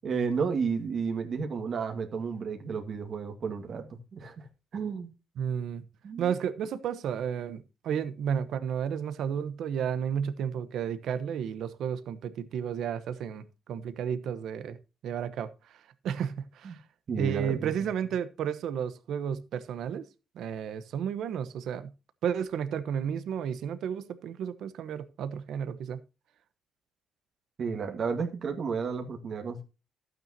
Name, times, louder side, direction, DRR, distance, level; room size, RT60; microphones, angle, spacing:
voice 1, 0.0-4.5 4.7-5.1 6.0-6.3 16.6-16.7 17.1-17.7 27.6-29.6, right 5 dB, 55° right, 1.9 m, -32 dB
voice 2, 5.4-5.8 6.2-14.8 15.0-16.8 17.2-20.0 20.3-21.9 22.2-26.0, right 8 dB, 75° right, 1.0 m, -32 dB
12.0 x 9.1 x 2.8 m
cardioid pair, 90°, 0 cm